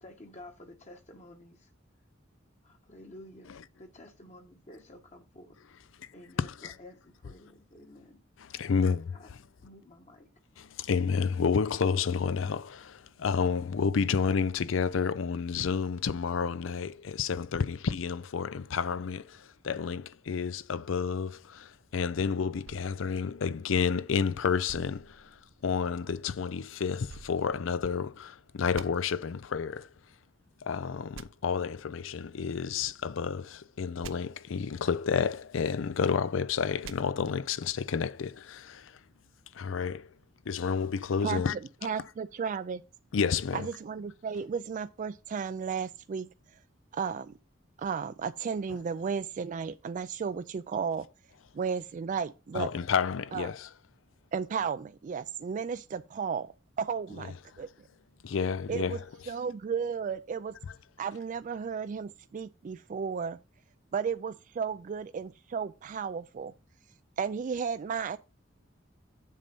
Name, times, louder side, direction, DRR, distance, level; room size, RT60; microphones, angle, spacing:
voice 1, 0.0-1.7 2.6-3.5 3.8-5.6 6.1-8.2 9.1-9.3 9.6-10.3, left 1 dB, 35° left, 1.3 m, -51 dB
voice 2, 6.4-6.7 8.4-9.4 10.6-29.9 30.6-39.0 39.5-40.1 40.5-41.6 43.1-43.7 48.7-48.8 52.5-53.7 57.2-57.3 58.2-59.1, left 6 dB, 75° left, 0.5 m, -30 dB
sound 1, 22.6-24.1 24.7-25.9 27.1-28.2 28.7-28.9 31.1-31.3 34.0-34.1 36.8-37.0, right 5 dB, 80° right, 0.6 m, -48 dB
voice 3, 41.8-42.8 43.5-46.3 46.9-47.3 47.8-51.1 51.5-52.7 53.3-53.5 54.3-56.5 56.8-57.7 58.7-59.0 59.3-60.6 61.0-63.4 63.9-66.5 67.2-68.2, right 6 dB, 40° right, 0.3 m, -34 dB
7.5 x 5.3 x 5.4 m
head